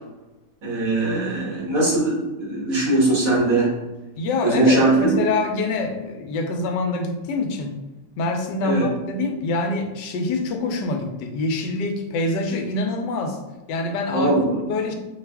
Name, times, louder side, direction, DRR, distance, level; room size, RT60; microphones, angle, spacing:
voice 1, 0.6-3.7 4.4-5.0 8.6-8.9 14.1-14.6, right 2 dB, 55° right, -5 dB, 1.9 m, -20 dB
voice 2, 4.2-7.8 8.2-13.4 13.7-14.3 14.7-14.9, left 3 dB, 85° left, 5 dB, 1.3 m, -25 dB
5.8 x 2.4 x 3.4 m, 1.1 s
omnidirectional pair, 1.9 m